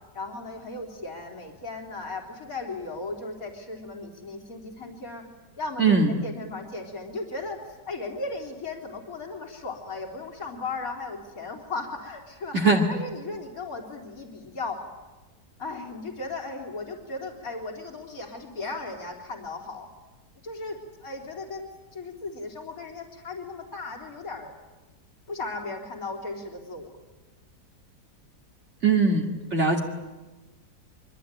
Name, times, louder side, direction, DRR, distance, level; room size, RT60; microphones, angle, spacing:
voice 1, 0.1-5.2 5.6-12.6 12.9-14.8 15.6-19.9 20.4-24.5 25.3-26.9, left 3 dB, 55° left, 1 dB, 4.0 m, -36 dB
voice 2, 5.8-6.1 12.5-12.9 28.8-29.8, right 4 dB, 40° right, 1 dB, 2.8 m, -21 dB
25.0 x 24.5 x 9.0 m, 1.2 s
omnidirectional pair, 1.8 m